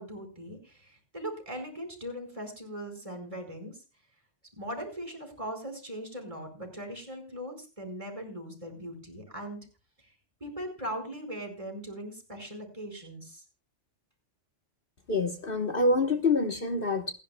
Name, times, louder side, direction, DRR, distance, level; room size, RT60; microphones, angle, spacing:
voice 1, 0.0-3.8 4.6-9.6 10.0-10.1 10.4-13.4, equal, 25° right, 4 dB, 4.9 m, -40 dB
voice 2, 15.1-17.1, left 3 dB, 50° left, 6 dB, 1.4 m, -26 dB
28.0 x 11.0 x 2.2 m, 0.30 s
omnidirectional pair, 1.2 m